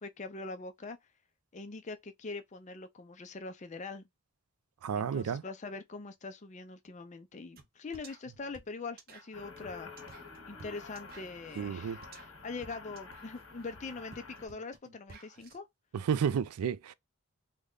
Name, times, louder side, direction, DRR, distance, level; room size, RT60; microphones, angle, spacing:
voice 1, 0.0-1.0 1.5-4.1 4.9-9.9 10.5-15.6, left 3 dB, 30° left, 0.4 m, -43 dB
voice 2, 4.8-5.4 11.6-12.0 15.9-16.9, right 7 dB, 85° right, 0.4 m, -31 dB
sound 1, 7.6-7.7 7.9-15.6, right 3 dB, 40° right, 0.6 m, -55 dB
sound 2, 9.3-14.5, left 4 dB, 65° left, 1.1 m, -49 dB
3.3 x 2.2 x 3.6 m
head